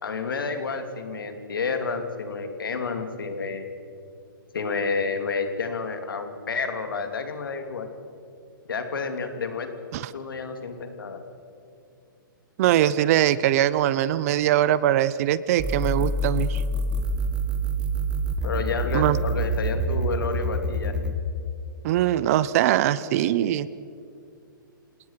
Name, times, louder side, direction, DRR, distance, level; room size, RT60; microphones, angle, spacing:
voice 1, 0.0-3.7 4.5-7.9 8.7-9.7 10.1-11.2 18.4-20.9, left 4 dB, 80° left, 6 dB, 2.9 m, -30 dB
voice 2, 12.6-16.6 18.9-19.2 21.8-23.7, right 12 dB, 45° right, 18 dB, 0.8 m, -22 dB
sound 1, 15.6-21.2, right 1 dB, 10° right, 1.4 m, -26 dB
28.5 x 18.5 x 5.9 m, 2.4 s
hypercardioid pair, 135°, 11 cm